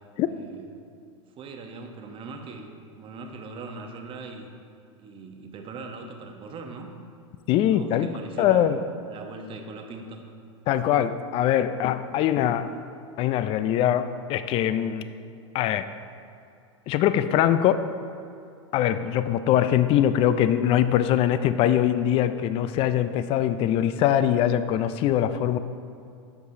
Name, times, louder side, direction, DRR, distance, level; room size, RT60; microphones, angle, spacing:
voice 1, 0.3-0.6 1.4-4.5 5.0-6.9 7.7-8.7 9.1-10.3, right 3 dB, 35° right, 4 dB, 0.8 m, -40 dB
voice 2, 7.5-8.1 8.4-8.8 10.7-12.7 13.2-15.1 15.5-15.9 16.9-17.9 18.7-25.6, left 11 dB, 35° left, 12 dB, 0.3 m, -22 dB
12.5 x 4.9 x 2.7 m, 2.5 s
hypercardioid pair, 105°, 16 cm